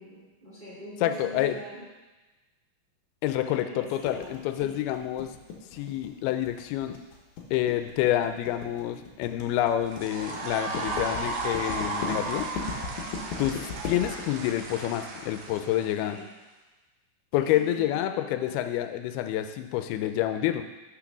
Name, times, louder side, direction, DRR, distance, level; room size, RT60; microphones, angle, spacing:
voice 1, 0.0-1.8 3.4-4.8 15.8-16.3 17.3-18.5, right 1 dB, 15° right, -8 dB, 1.6 m, -43 dB
voice 2, 1.0-1.6 3.2-5.3 5.7-7.0 7.5-12.5 13.4-16.2 17.3-20.6, left 12 dB, 90° left, 8 dB, 2.5 m, -28 dB
sound 1, 4.0-15.6, left 5 dB, 65° left, 2.1 m, -38 dB
sound 2, 9.9-16.2, right 3 dB, 70° right, 2.2 m, -35 dB
6.6 x 5.9 x 6.0 m, 1.2 s
omnidirectional pair, 4.4 m